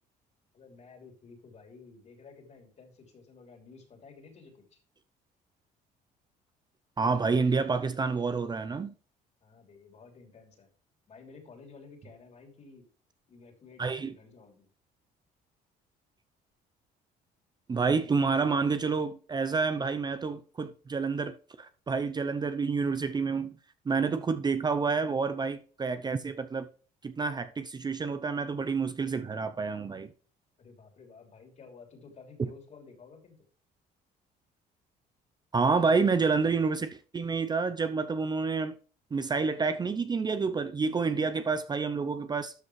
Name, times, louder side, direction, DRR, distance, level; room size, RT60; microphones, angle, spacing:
voice 1, 0.5-4.8 9.4-10.7 11.1-12.9 13.3-14.7 30.6-33.4 41.2-41.5, left 4 dB, 40° left, 3.1 m, -53 dB
voice 2, 7.0-8.9 13.8-14.1 17.7-23.5 23.9-26.7 27.0-30.1 35.5-38.8 39.1-42.5, right 4 dB, 25° right, 0.6 m, -29 dB
12.5 x 5.3 x 3.2 m
cardioid pair, 110°, 17 cm